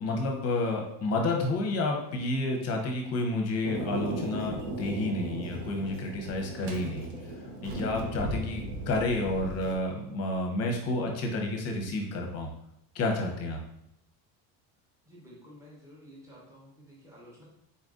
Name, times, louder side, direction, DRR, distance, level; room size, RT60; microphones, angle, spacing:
voice 1, 0.0-7.1 7.6-12.5 12.9-13.6, left 2 dB, 35° left, 2 dB, 0.7 m, -30 dB
Thunder, 3.6-9.7, right 1 dB, 65° right, 0.8 m, -36 dB
voice 2, 15.1-17.4, equal, 5° right, -5 dB, 0.9 m, -52 dB
4.1 x 2.6 x 3.6 m, 0.77 s
cardioid pair, 165°, 43 cm